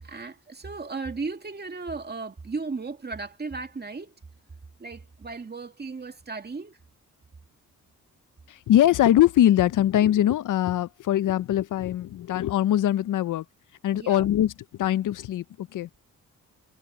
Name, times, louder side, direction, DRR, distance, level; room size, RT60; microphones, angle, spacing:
voice 1, 0.0-4.2 4.8-6.8 13.9-14.3, right 4 dB, 30° right, 2.4 m, -35 dB
voice 2, 8.5-13.4 13.8-14.5 14.8-15.9, left 12 dB, 75° left, 0.6 m, -22 dB
cardioid pair, 100°, 32 cm